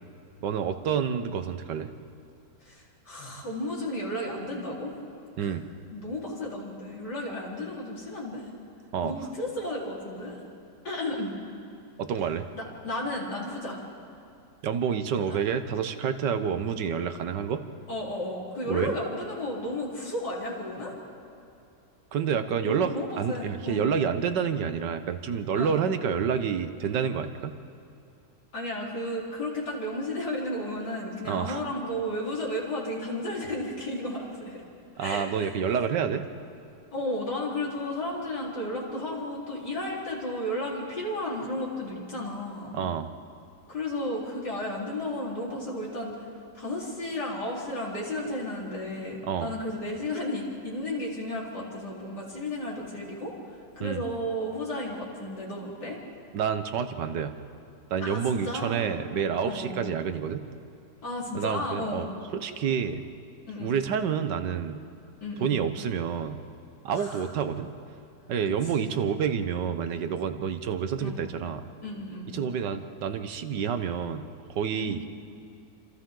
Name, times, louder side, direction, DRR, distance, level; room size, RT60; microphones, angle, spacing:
voice 1, 0.4-1.9 5.4-5.6 8.9-9.2 12.0-12.5 14.6-17.6 18.7-18.9 22.1-27.5 31.2-31.6 35.0-36.2 42.7-43.1 49.2-49.5 53.8-54.0 56.3-57.3 57.9-60.4 61.3-63.0 63.6-64.8 65.4-66.4 66.8-67.7 68.3-71.6 72.3-75.0, right 7 dB, 80° right, 9 dB, 1.7 m, -28 dB
voice 2, 2.6-5.0 5.4-5.5 5.9-8.5 9.0-10.4 10.8-11.3 12.5-13.8 15.3-15.4 17.9-20.9 22.6-23.9 25.5-25.8 28.5-34.6 35.0-35.5 36.9-42.7 43.7-46.3 46.5-53.3 53.7-56.0 58.0-58.9 59.4-59.8 61.0-62.1 63.5-63.7 65.2-65.5 66.9-67.3 68.8-69.0 71.0-71.2 71.8-72.3 74.7-74.9, left 1 dB, 70° left, -5 dB, 4.7 m, -33 dB
28.5 x 26.5 x 3.9 m, 2.6 s
omnidirectional pair, 1.9 m